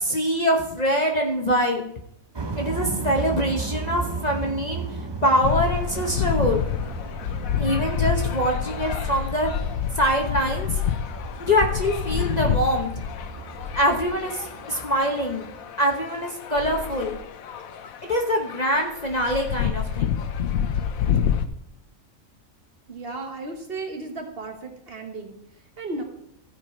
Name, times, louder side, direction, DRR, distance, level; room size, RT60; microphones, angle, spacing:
voice 1, 0.0-1.9 2.6-4.8 5.2-6.6 7.6-9.5 10.0-10.7 11.4-12.9 13.7-15.4 15.8-17.2 18.0-20.2, equal, 35° left, 0 dB, 0.9 m, -24 dB
sound 1, 2.3-15.6, right 4 dB, 30° right, 0.5 m, -35 dB
sound 2, 5.4-21.5, left 8 dB, 85° left, 1.1 m, -28 dB
voice 2, 22.9-26.0, right 3 dB, 45° right, 3 dB, 1.4 m, -35 dB
14.5 x 5.1 x 4.4 m, 0.75 s
omnidirectional pair, 1.4 m